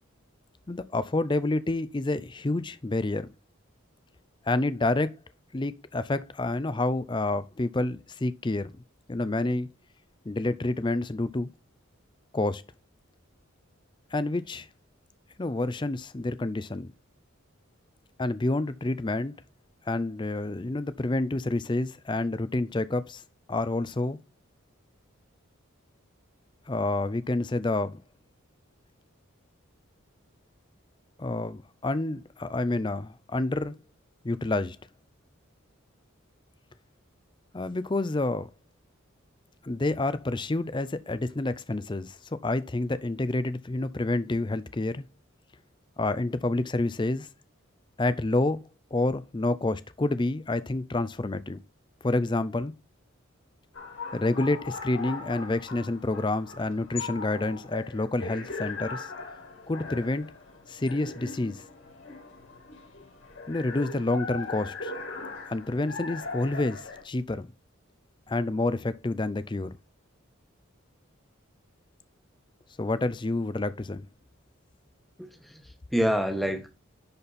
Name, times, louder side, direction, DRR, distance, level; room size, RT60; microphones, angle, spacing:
voice 1, 0.7-3.3 4.5-5.1 5.5-8.7 9.1-9.7 10.3-11.5 12.3-12.6 14.1-14.7 15.4-16.9 18.2-19.3 19.9-23.2 23.5-24.2 26.7-28.0 31.2-33.7 34.2-34.8 37.5-38.5 39.6-45.0 46.0-47.3 48.0-48.6 48.9-51.6 52.0-52.7 54.1-59.1 59.7-60.3 60.7-61.6 63.5-64.9 65.5-67.5 68.3-69.7 72.8-74.1, left 2 dB, 20° left, 0.5 m, -28 dB
sound 1, 53.7-67.0, left 4 dB, 75° left, 4.3 m, -40 dB
voice 2, 75.2-76.7, equal, ahead, 1.2 m, -28 dB
10.5 x 4.3 x 4.1 m
head